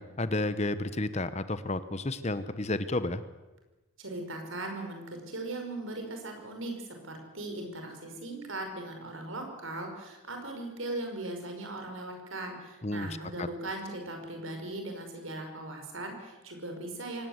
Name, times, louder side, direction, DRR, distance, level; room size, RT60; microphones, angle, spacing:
voice 1, 0.0-3.2 12.8-13.5, left 2 dB, 30° left, 13 dB, 0.9 m, -32 dB
voice 2, 4.0-17.3, right 2 dB, 70° right, 4 dB, 5.6 m, -39 dB
24.0 x 18.5 x 8.1 m, 1.1 s
head